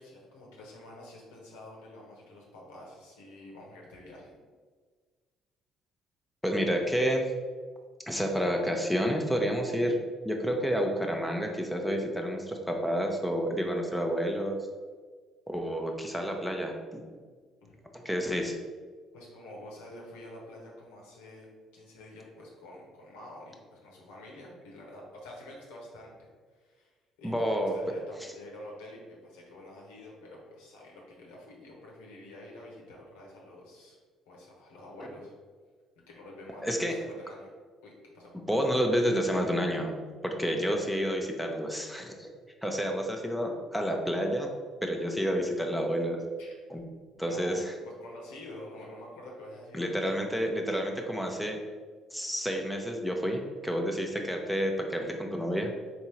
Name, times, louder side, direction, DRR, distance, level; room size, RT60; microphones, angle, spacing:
voice 1, 0.0-4.4 17.6-17.8 19.1-21.5 21.7-26.9 27.2-34.0 34.3-35.3 36.1-37.5 37.8-38.3 42.9-43.0 46.4-46.5 47.2-50.3, left 1 dB, 90° left, -2 dB, 1.0 m, -48 dB
voice 2, 6.4-7.3 8.1-14.6 15.5-17.1 18.0-18.6 27.2-27.8 35.0-35.1 36.6-37.0 38.5-39.9 40.2-42.3 42.6-44.5 44.8-46.2 46.7-46.8 47.2-47.7 49.7-51.6 52.1-55.7, equal, ahead, 2 dB, 0.7 m, -29 dB
3.6 x 2.8 x 4.4 m, 1.5 s
supercardioid pair, 65°, 0 cm